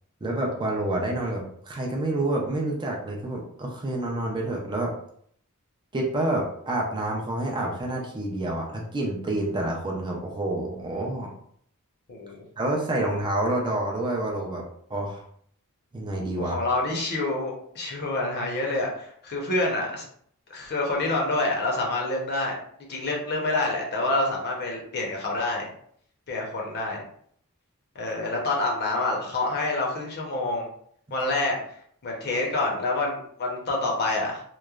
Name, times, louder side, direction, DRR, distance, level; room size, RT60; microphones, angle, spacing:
voice 1, 0.2-5.0 5.9-11.3 12.6-14.6 14.9-15.2 15.9-16.6, right 1 dB, 20° right, -1 dB, 0.4 m, -28 dB
voice 2, 16.4-20.0 20.5-22.6 22.9-25.7 26.3-27.1 27.9-30.7 31.1-31.6 32.0-34.4, left 2 dB, 50° left, -1 dB, 0.7 m, -27 dB
3.0 x 2.1 x 2.3 m, 0.64 s
head